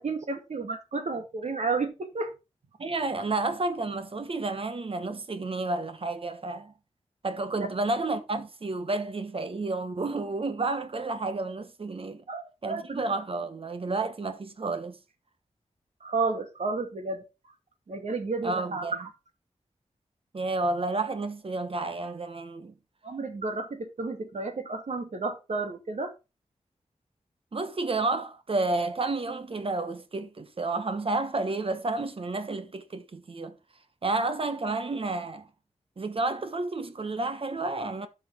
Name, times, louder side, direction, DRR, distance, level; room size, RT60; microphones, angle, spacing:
voice 1, 0.0-2.3 7.5-7.7 12.3-13.0 16.0-17.2 17.9-19.1 23.0-26.1, right 3 dB, 70° right, 2.2 m, -32 dB
voice 2, 2.8-6.7 7.2-12.2 12.6-15.0 18.4-19.0 20.3-22.7 27.5-33.6 34.0-35.5 36.0-38.1, right 3 dB, 50° right, 1.3 m, -31 dB
12.0 x 6.0 x 3.7 m
wide cardioid pair, 105°, 12 cm